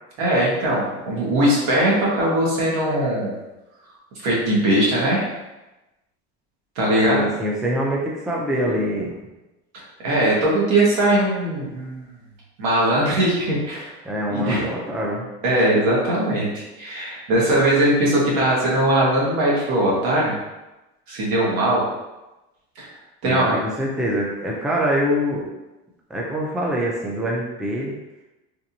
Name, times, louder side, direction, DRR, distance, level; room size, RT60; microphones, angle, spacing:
voice 1, 0.2-3.4 4.2-5.3 6.7-7.3 9.7-12.1 12.6-13.9 14.3-14.7 15.4-20.3 21.1-21.8 22.8-22.9 23.2-23.6, right 1 dB, 70° right, -5 dB, 1.4 m, -20 dB
voice 2, 7.1-9.1 14.0-15.3 23.2-25.4 26.1-27.9, equal, ahead, -3 dB, 0.3 m, -24 dB
3.3 x 2.9 x 2.6 m, 1.0 s
cardioid pair, 135°, 30 cm